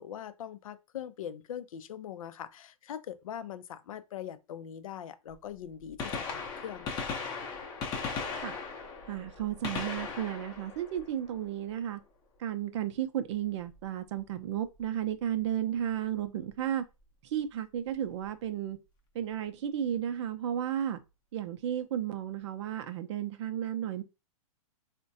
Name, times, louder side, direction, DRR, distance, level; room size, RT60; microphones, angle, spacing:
voice 1, 0.0-7.1, left 9 dB, 70° left, 0.4 m, -42 dB
Gunshot gunfire, 5.3-5.4 5.8-11.7 13.6-13.8 14.8-14.9 16.5-16.6 18.0-18.1 18.3-18.4, left 5 dB, 25° left, 0.6 m, -38 dB
voice 2, 9.1-12.0 12.4-16.8 17.2-18.8 19.1-21.0 21.3-24.0, right 10 dB, 55° right, 0.5 m, -33 dB
3.5 x 2.1 x 2.6 m
hypercardioid pair, 130°, 18 cm